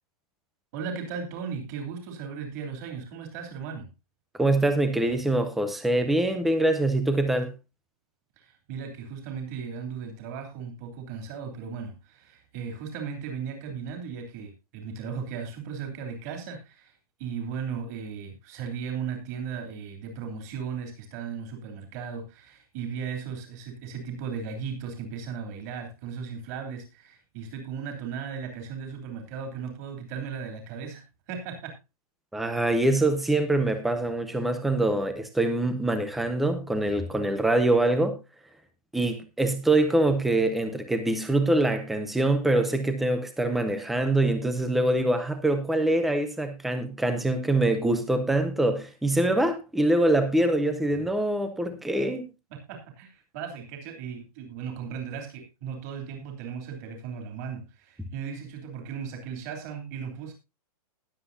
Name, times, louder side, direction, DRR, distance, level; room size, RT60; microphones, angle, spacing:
voice 1, 0.7-3.9 8.4-16.9 17.2-31.8 52.5-60.3, right 6 dB, 25° right, 3.1 m, -36 dB
voice 2, 4.4-7.5 32.3-38.2 38.9-52.3, right 1 dB, ahead, 0.5 m, -24 dB
20.0 x 7.8 x 2.7 m
hypercardioid pair, 180°, 20 cm